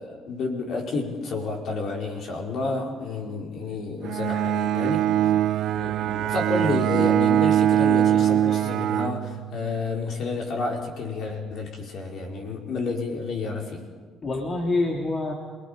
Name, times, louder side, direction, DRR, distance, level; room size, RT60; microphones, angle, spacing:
voice 1, 0.0-5.3 6.3-13.8, left 3 dB, 55° left, 1 dB, 4.4 m, -30 dB
Bowed string instrument, 4.0-9.8, right 11 dB, 65° right, 0.6 m, -22 dB
voice 2, 5.7-6.3 14.2-15.3, left 2 dB, 35° left, 1 dB, 2.3 m, -27 dB
28.0 x 20.5 x 5.1 m, 1.5 s
cardioid pair, 105°, 0 cm